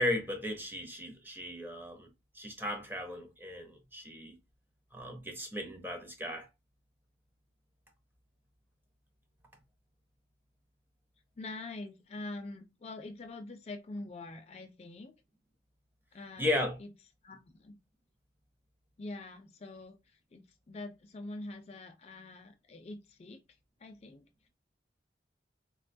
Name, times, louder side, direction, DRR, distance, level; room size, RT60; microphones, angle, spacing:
voice 1, 0.0-2.1 2.3-4.4 4.9-6.5 16.4-16.8, left 1 dB, 10° right, 0.5 m, -35 dB
voice 2, 11.4-15.1 16.1-16.9 17.2-17.8 19.0-23.4 23.8-24.3, left 2 dB, 35° left, 0.4 m, -45 dB
3.6 x 2.2 x 2.5 m
head